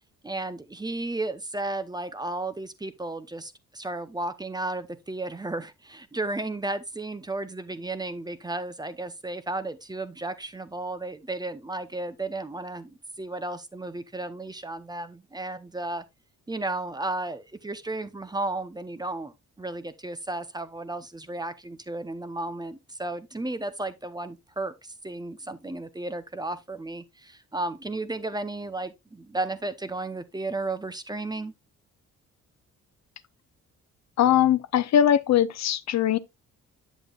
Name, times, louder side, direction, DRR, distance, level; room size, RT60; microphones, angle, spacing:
voice 1, 0.2-16.0 16.5-31.5, right 2 dB, 15° right, 0.8 m, -34 dB
voice 2, 34.2-36.2, left 10 dB, 60° left, 0.7 m, -21 dB
8.2 x 7.4 x 2.4 m
cardioid pair, 90°, 30 cm